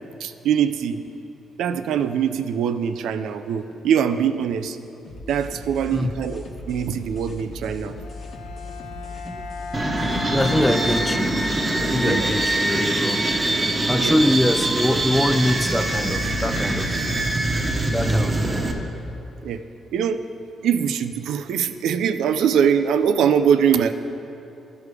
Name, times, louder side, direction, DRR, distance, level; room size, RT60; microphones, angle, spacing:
voice 1, 0.2-1.0 1.6-4.8 5.3-8.0 12.0-12.3 14.0-14.1 19.4-19.6 19.9-20.2 20.6-23.9, right 8 dB, 80° right, 10 dB, 0.4 m, -22 dB
sound 1, 5.0-12.6, left 2 dB, 50° left, 1.1 m, -38 dB
Bowed string instrument, 7.9-12.0, left 5 dB, 85° left, 0.5 m, -35 dB
sound 2, 9.7-18.7, right 2 dB, 30° right, 1.0 m, -23 dB
voice 2, 10.3-13.2 13.9-17.0 17.9-18.6, left 1 dB, 10° left, 8 dB, 0.4 m, -24 dB
13.5 x 5.0 x 4.8 m, 2.9 s
cardioid pair, 75°, 0 cm